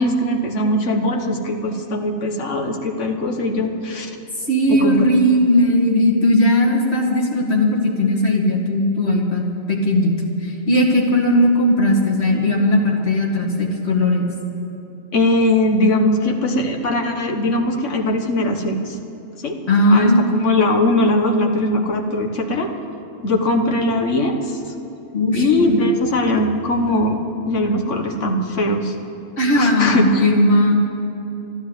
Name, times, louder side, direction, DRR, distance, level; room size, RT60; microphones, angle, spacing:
voice 1, 0.0-4.2 4.7-5.4 15.1-19.0 19.4-19.6 19.9-22.7 23.2-24.6 25.3-27.2 27.5-28.9 29.5-30.3, left 1 dB, 85° left, 4 dB, 1.6 m, -20 dB
voice 2, 4.5-10.2 10.4-14.3 19.7-20.2 25.1-25.9 29.4-30.7, left 1 dB, 60° left, -2 dB, 2.4 m, -17 dB
12.5 x 12.5 x 8.2 m, 2.9 s
omnidirectional pair, 1.2 m